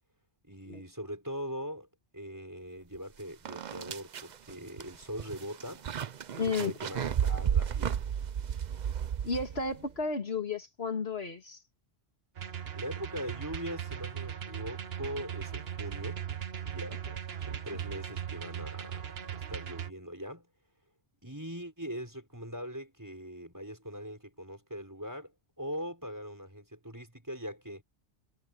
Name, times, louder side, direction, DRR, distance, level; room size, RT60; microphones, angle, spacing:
voice 1, 0.4-1.9 2.1-5.9 6.4-8.0 12.7-16.2 16.6-17.1 17.5-20.5 21.2-27.8, equal, 15° right, 5.6 m, -41 dB
sound 1, 3.0-3.1 3.5-9.8, right 8 dB, 50° right, 0.7 m, -33 dB
voice 2, 6.4-6.7 9.2-11.6, left 4 dB, 70° left, 2.4 m, -32 dB
sound 2, 12.4-19.9, right 9 dB, 65° right, 1.2 m, -39 dB
omnidirectional pair, 1.1 m